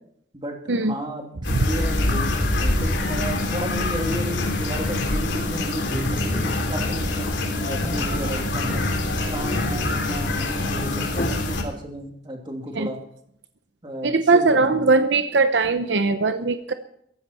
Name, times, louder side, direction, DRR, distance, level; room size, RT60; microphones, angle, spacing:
voice 1, 0.3-8.8 9.3-13.0 13.8-14.9, equal, 25° right, 1 dB, 3.0 m, -33 dB
sound 1, 1.4-11.6, left 2 dB, 80° left, 3.3 m, -25 dB
sound 2, 6.1-11.6, equal, 5° left, 2.8 m, -33 dB
voice 2, 14.0-16.7, right 3 dB, 80° right, 9 dB, 0.8 m, -20 dB
16.0 x 15.5 x 4.4 m, 0.71 s
head